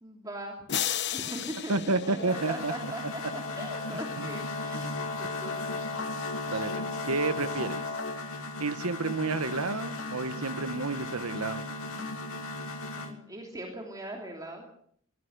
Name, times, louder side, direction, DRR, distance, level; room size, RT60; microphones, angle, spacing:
voice 1, 0.0-0.6 1.1-5.9 12.9-14.6, right 1 dB, 15° right, 0 dB, 3.1 m, -40 dB
sound 1, 0.7-3.0, left 10 dB, 55° left, 1.0 m, -34 dB
voice 2, 1.7-2.7 4.2-4.5 6.5-7.9 8.6-11.6, right 3 dB, 90° right, 11 dB, 1.2 m, -30 dB
sound 2, 2.0-13.1, left 2 dB, 75° left, 3.1 m, -36 dB
24.0 x 17.5 x 6.6 m, 0.64 s
head